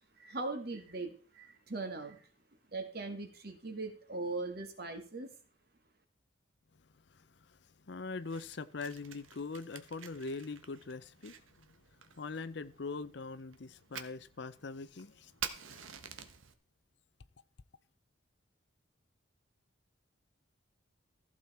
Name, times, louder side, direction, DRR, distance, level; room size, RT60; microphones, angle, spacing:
voice 1, 0.2-2.2 2.7-5.3, right 3 dB, 50° right, 2.1 m, -40 dB
voice 2, 7.1-7.6 7.9-11.7 12.2-15.3 15.7-15.8, left 4 dB, 55° left, 0.6 m, -42 dB
Fire, 8.1-16.5, right 8 dB, 80° right, 1.2 m, -49 dB
15.0 x 7.6 x 4.3 m
head